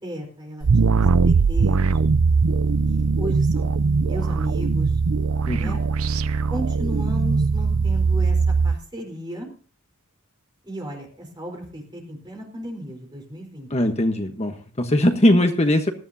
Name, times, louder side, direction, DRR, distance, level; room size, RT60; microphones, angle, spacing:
voice 1, 0.0-2.0 2.8-5.0 5.5-5.8 6.5-9.5 10.6-13.7, equal, 20° right, 2 dB, 4.3 m, -35 dB
sound 1, 0.6-8.8, right 4 dB, 75° right, 0.6 m, -20 dB
voice 2, 5.5-5.8 13.7-15.9, left 1 dB, 30° left, 6 dB, 1.2 m, -20 dB
19.0 x 13.5 x 2.8 m, 0.39 s
head